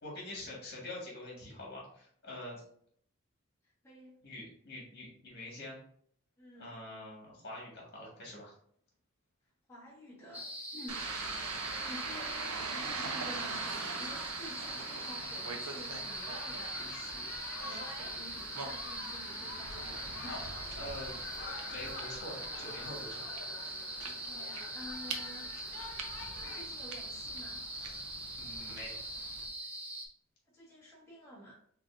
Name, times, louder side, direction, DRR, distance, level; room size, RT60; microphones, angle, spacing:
voice 1, 0.0-2.6 4.2-5.8 6.6-8.5 20.8-21.2 21.7-23.4 27.8-28.1 28.4-29.0, left 1 dB, 50° left, -4 dB, 1.7 m, -45 dB
voice 2, 3.6-4.1 6.4-6.8 9.7-11.4 11.8-20.6 24.0-25.5 26.4-27.6 30.5-31.5, equal, 10° left, -7 dB, 1.4 m, -50 dB
sound 1, 10.3-30.1, right 1 dB, 5° right, 0.4 m, -42 dB
sound 2, 10.9-29.5, right 4 dB, 85° right, 0.6 m, -43 dB
sound 3, 16.1-26.7, left 3 dB, 65° left, 0.6 m, -48 dB
4.0 x 3.6 x 2.5 m, 0.63 s
head